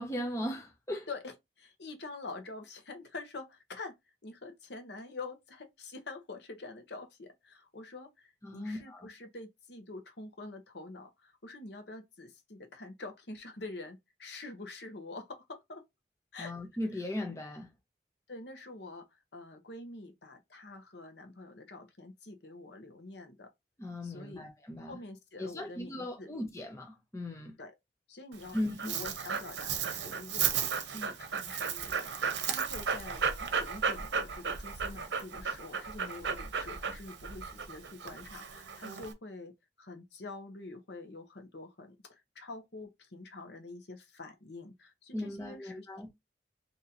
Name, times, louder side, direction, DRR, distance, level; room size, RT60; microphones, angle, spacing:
voice 1, 0.0-1.1 8.4-9.1 16.4-17.7 23.8-25.0 25.4-27.5 28.5-29.0 45.1-46.1, left 1 dB, 15° left, 0.7 m, -38 dB
voice 2, 1.6-3.9 4.2-15.8 16.3-16.6 16.9-17.0 18.3-19.0 19.3-23.5 24.0-24.4 24.8-26.3 27.6-27.7 28.1-28.6 28.8-39.5 39.8-45.9, left 3 dB, 70° left, 1.0 m, -46 dB
Dog, 28.3-39.1, right 6 dB, 80° right, 0.7 m, -34 dB
2.9 x 2.8 x 3.9 m
head